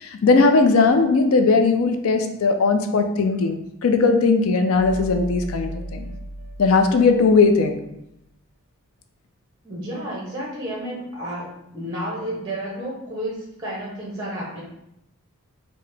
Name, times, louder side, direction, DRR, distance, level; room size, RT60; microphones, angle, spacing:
voice 1, 0.0-6.1 6.6-7.8, left 4 dB, 70° left, 6 dB, 0.4 m, -18 dB
sound 1, 4.6-7.8, right 1 dB, 40° right, 0.4 m, -36 dB
voice 2, 9.6-14.6, right 1 dB, 20° right, -4 dB, 0.7 m, -31 dB
4.7 x 2.1 x 3.3 m, 0.81 s
head